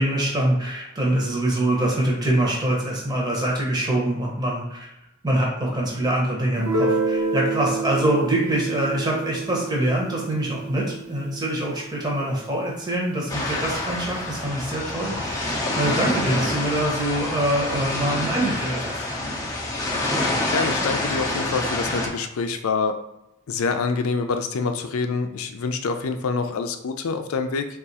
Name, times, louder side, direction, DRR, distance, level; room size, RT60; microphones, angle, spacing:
voice 1, 0.0-4.9 5.2-19.0, right 1 dB, 20° right, -3 dB, 0.9 m, -24 dB
Guitar, 6.6-12.1, right 3 dB, 80° right, 0.7 m, -28 dB
sound 1, 13.3-22.1, left 2 dB, 15° left, 0.6 m, -27 dB
voice 2, 20.5-23.0 23.5-27.7, left 4 dB, 85° left, 7 dB, 0.4 m, -26 dB
3.5 x 2.4 x 4.1 m, 0.86 s
head